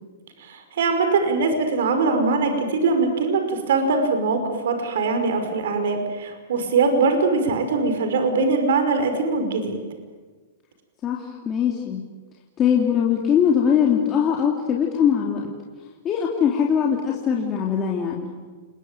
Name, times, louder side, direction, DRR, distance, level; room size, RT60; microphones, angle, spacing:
voice 1, 0.4-9.8, right 4 dB, 75° right, 7 dB, 5.4 m, -22 dB
voice 2, 11.0-12.0 12.6-15.4 16.0-18.3, left 8 dB, 20° left, -1 dB, 2.9 m, -21 dB
29.0 x 21.5 x 9.1 m, 1.4 s
supercardioid pair, 155°, 0 cm